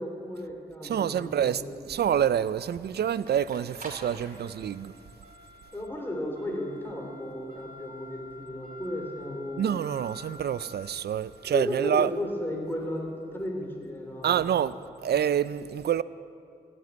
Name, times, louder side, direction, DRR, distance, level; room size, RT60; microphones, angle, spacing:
voice 1, 0.0-1.7 5.7-9.7 11.5-14.5 15.1-15.2, left 1 dB, 15° left, 3.2 m, -34 dB
voice 2, 0.8-1.6 1.9-4.9 9.6-12.1 14.2-14.8 15.0-16.0, right 9 dB, 90° right, 0.4 m, -27 dB
sound 1, 0.9-15.0, left 1 dB, 55° right, 2.9 m, -50 dB
16.0 x 7.9 x 9.3 m
cardioid pair, 50°, 17 cm